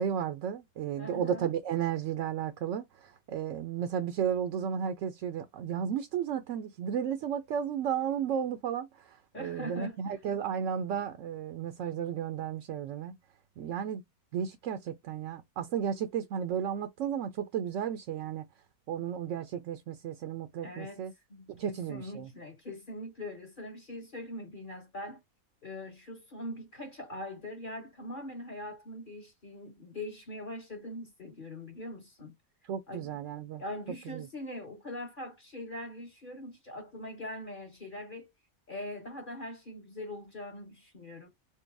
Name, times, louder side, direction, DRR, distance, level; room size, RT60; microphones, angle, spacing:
voice 1, 0.0-13.2 13.6-14.0 14.3-18.4 18.9-21.1 21.5-22.3 32.7-33.6 34.1-34.3, right 8 dB, 70° right, 0.8 m, -33 dB
voice 2, 1.0-1.5 9.3-10.2 20.6-25.2 25.6-32.3 32.9-33.2 33.6-38.3 38.7-41.3, left 1 dB, 40° left, 1.1 m, -42 dB
4.6 x 2.1 x 3.3 m
omnidirectional pair, 1.5 m